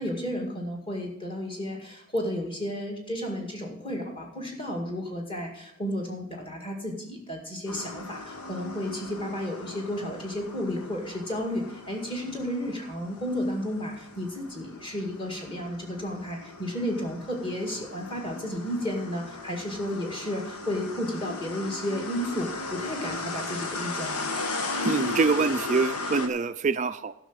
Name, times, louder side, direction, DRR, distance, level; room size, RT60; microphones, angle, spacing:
voice 1, 0.0-24.3, equal, 25° left, 1 dB, 2.0 m, -32 dB
sound 1, 7.7-26.3, left 3 dB, 90° left, 1.4 m, -37 dB
voice 2, 24.8-27.1, right 4 dB, 35° right, 12 dB, 0.3 m, -25 dB
12.0 x 6.0 x 7.2 m, 0.78 s
head